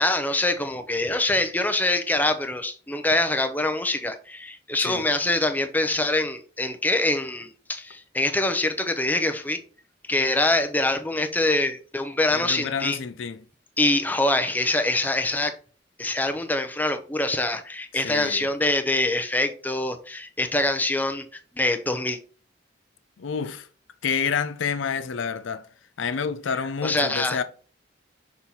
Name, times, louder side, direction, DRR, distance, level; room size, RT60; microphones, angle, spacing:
voice 1, 0.0-9.6 10.1-13.0 13.8-15.5 16.0-22.2 26.8-27.4, left 2 dB, 10° left, 0.6 m, -24 dB
voice 2, 12.3-13.4 17.9-18.5 23.2-23.7 24.0-25.7 26.0-27.4, left 6 dB, 80° left, 0.5 m, -29 dB
6.2 x 4.2 x 4.0 m
head